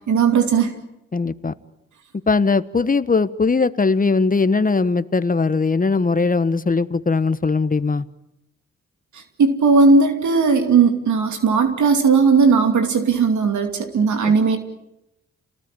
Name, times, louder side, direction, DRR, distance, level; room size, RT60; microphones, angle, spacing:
voice 1, 0.1-0.8 9.1-14.6, right 5 dB, 75° right, 6 dB, 2.7 m, -17 dB
voice 2, 1.1-1.5 2.3-8.0 14.2-14.3, left 4 dB, 30° left, 15 dB, 1.2 m, -19 dB
29.0 x 19.0 x 9.1 m, 0.86 s
cardioid pair, 65°, 29 cm